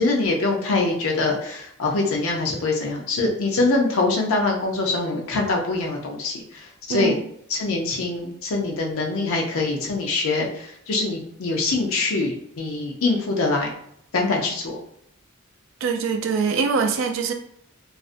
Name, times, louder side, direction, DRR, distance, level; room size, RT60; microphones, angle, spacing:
voice 1, 0.0-6.3 6.9-7.1 7.5-10.5 10.9-13.7 14.1-14.8, left 3 dB, 80° left, 0 dB, 0.5 m, -23 dB
voice 2, 6.9-7.2 15.8-17.3, right 5 dB, 65° right, 5 dB, 0.3 m, -23 dB
2.4 x 2.0 x 2.5 m, 0.71 s
head